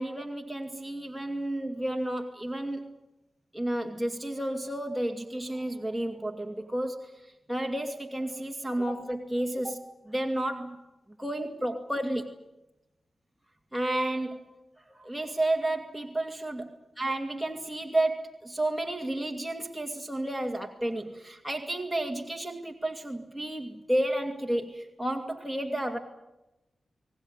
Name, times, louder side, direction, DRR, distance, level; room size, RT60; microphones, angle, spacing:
voice 1, 0.0-2.8 3.5-7.1 7.5-9.8 10.1-10.8 11.2-12.3 13.7-14.5 14.9-16.7 17.0-26.0, right 1 dB, ahead, 2 dB, 2.4 m, -31 dB
23.5 x 18.5 x 10.0 m, 0.97 s
cardioid pair, 70°, 0 cm